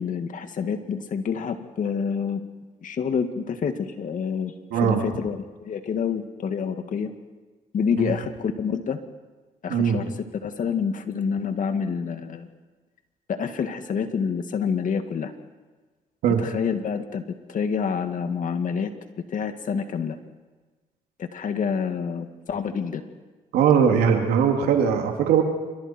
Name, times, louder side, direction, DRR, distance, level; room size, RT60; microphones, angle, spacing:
voice 1, 0.0-2.5 2.8-7.1 7.7-9.0 9.6-12.5 13.3-15.3 16.4-17.2 17.5-18.9 19.3-20.2 21.2-23.0, left 6 dB, 60° left, 7 dB, 2.2 m, -27 dB
voice 2, 4.7-5.0 8.0-8.1 9.7-10.0 16.2-16.4 23.5-25.4, right 7 dB, 90° right, 3 dB, 2.8 m, -20 dB
27.5 x 25.0 x 4.6 m, 1.3 s
cardioid pair, 80°, 16 cm